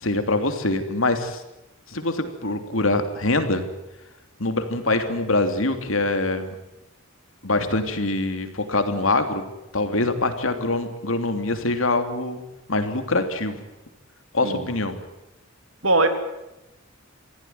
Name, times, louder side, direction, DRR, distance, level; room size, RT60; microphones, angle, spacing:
voice 1, 0.0-1.4 1.9-3.7 4.4-6.5 7.4-9.4 9.7-12.4 12.7-13.6 14.3-15.0, left 2 dB, 70° left, 8 dB, 3.0 m, -24 dB
voice 2, 14.4-14.7 15.8-16.1, right 2 dB, 75° right, 7 dB, 3.4 m, -20 dB
26.5 x 16.5 x 9.5 m, 0.95 s
head